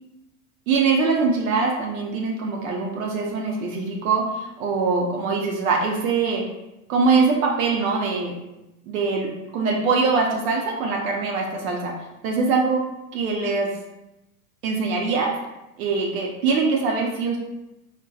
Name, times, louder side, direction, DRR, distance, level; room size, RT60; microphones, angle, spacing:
voice 1, 0.7-6.5 6.9-8.4 8.9-11.9 12.2-12.9 13.1-13.7 14.6-15.3 15.8-17.4, right 4 dB, 65° right, -1 dB, 0.7 m, -23 dB
3.9 x 2.2 x 2.3 m, 0.94 s
hypercardioid pair, 90°, 43 cm